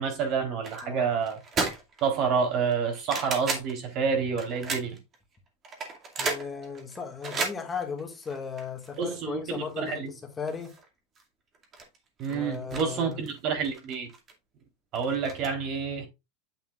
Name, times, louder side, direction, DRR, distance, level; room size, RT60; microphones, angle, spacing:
voice 1, 0.0-1.4 2.0-5.0 9.0-10.1 12.2-14.1 14.9-16.1, right 6 dB, 45° right, 3.8 m, -28 dB
sound 1, 0.6-0.9 1.2-2.1 2.4-3.7 4.4-5.1 5.6-9.0 9.5-9.6 9.9-10.0 10.5-10.9 11.2-11.3 11.5-12.9 13.1-14.3 14.9-15.5, right 4 dB, 25° right, 2.4 m, -34 dB
voice 2, 6.2-10.8 12.3-13.2, left 6 dB, 15° left, 1.9 m, -36 dB
9.2 x 7.1 x 2.5 m
supercardioid pair, 145°, 0 cm